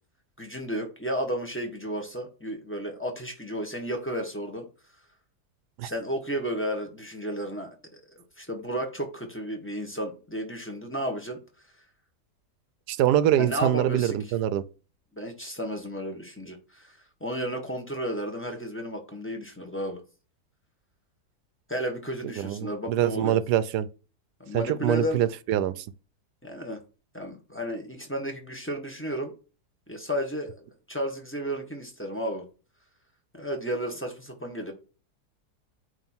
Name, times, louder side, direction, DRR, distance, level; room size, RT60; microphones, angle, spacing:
voice 1, 0.4-4.7 5.8-11.4 11.6-11.7 13.4-14.3 15.1-20.0 21.7-23.4 24.4-25.3 26.4-26.8 27.1-29.3 29.9-32.5 33.3-34.7, equal, 10° left, 1.2 m, -33 dB
voice 2, 12.9-14.6 22.4-23.9 24.5-25.8, right 11 dB, 85° right, 1.2 m, -24 dB
8.9 x 3.3 x 4.4 m
omnidirectional pair, 1.7 m